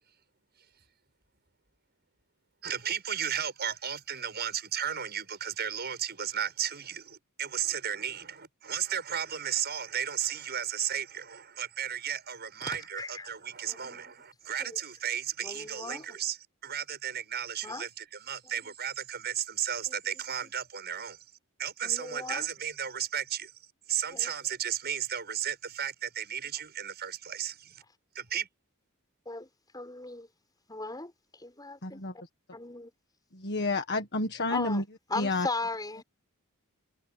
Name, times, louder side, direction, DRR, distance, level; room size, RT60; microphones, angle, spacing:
voice 1, 2.6-21.2 21.6-23.5 23.9-27.8 28.1-28.5, right 9 dB, 45° right, 7.7 m, -34 dB
voice 2, 12.6-13.3 13.7-14.0 14.6-14.8 15.4-16.2 17.6-17.8 21.8-22.5 24.1-24.3 29.3-29.5 29.7-30.3 30.7-31.1 31.4-32.0 32.5-32.9 34.5-34.8 35.1-36.0, left 3 dB, 20° left, 5.8 m, -37 dB
voice 3, 33.4-34.8 35.2-35.5, left 2 dB, 50° left, 1.7 m, -29 dB
head